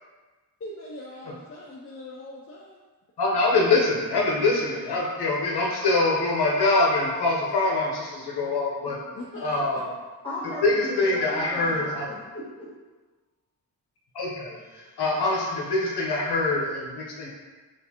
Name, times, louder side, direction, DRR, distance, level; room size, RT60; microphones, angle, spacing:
voice 1, 0.6-2.8 9.1-9.4, left 1 dB, 35° left, -5 dB, 0.5 m, -41 dB
voice 2, 3.2-9.0 9.4-9.9 10.6-12.1 14.1-17.3, left 2 dB, 80° left, -3 dB, 0.9 m, -24 dB
sound 1, 5.2-10.3, left 3 dB, 40° right, 0.4 m, -44 dB
voice 3, 10.2-12.7, left 1 dB, 15° left, -10 dB, 1.4 m, -36 dB
6.4 x 2.5 x 2.8 m, 1.3 s
wide cardioid pair, 135°, 39 cm